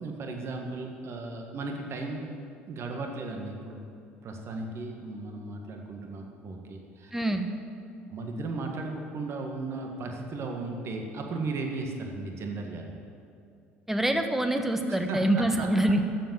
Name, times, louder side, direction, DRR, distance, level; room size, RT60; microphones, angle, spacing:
voice 1, 0.0-2.3 2.7-3.8 4.2-7.1 8.1-12.9 14.9-15.7, right 3 dB, 45° right, 2 dB, 1.7 m, -36 dB
voice 2, 7.1-7.5 13.9-16.0, right 1 dB, 5° right, 6 dB, 1.2 m, -25 dB
13.5 x 7.5 x 7.5 m, 2.5 s
figure-of-eight pair, 60°, 6 cm